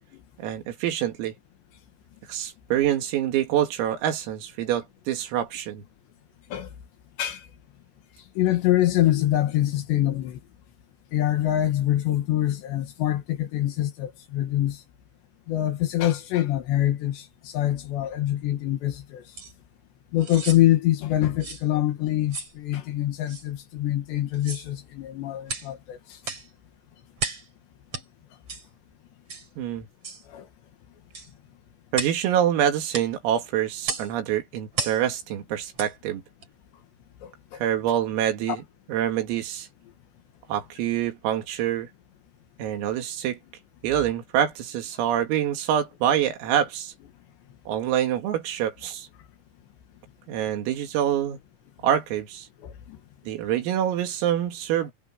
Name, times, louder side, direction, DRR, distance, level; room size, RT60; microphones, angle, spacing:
voice 1, 0.4-1.3 2.3-5.8 29.6-29.9 31.9-36.2 37.6-38.6 38.9-39.7 40.5-41.9 42.6-43.4 43.8-46.9 47.7-49.1 50.3-51.4 51.8-52.5 53.3-54.9, right 10 dB, 85° right, 5.0 m, -26 dB
voice 2, 8.4-10.4 11.1-14.8 15.5-19.2 20.1-26.0 30.3-30.5 37.2-37.6 38.5-38.6 52.6-53.0, left 13 dB, 65° left, 3.4 m, -25 dB
sound 1, 19.4-19.5 20.2-20.6 21.4-21.7 22.3-22.6 23.3-23.5 24.3-24.7 25.5-25.7 26.2-26.5 27.2-27.5 27.9-28.1 28.5-28.7 29.3-29.5 30.0-30.2 31.1-31.3 31.9-32.2 32.9-33.1 33.8-34.1 34.7-35.0 35.7-35.9 36.4-36.5, right 4 dB, 30° right, 5.1 m, -33 dB
omnidirectional pair, 5.9 m